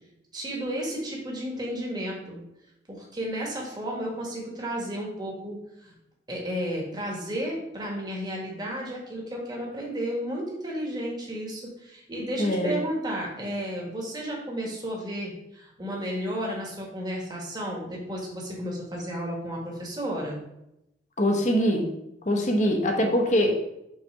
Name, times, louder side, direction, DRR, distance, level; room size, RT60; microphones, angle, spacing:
voice 1, 0.3-2.4 2.9-5.9 6.3-20.4, equal, 20° right, -2 dB, 1.6 m, -33 dB
voice 2, 12.4-12.7 21.2-21.9 22.2-23.5, equal, 40° left, 3 dB, 1.0 m, -23 dB
5.6 x 4.2 x 5.6 m, 0.85 s
head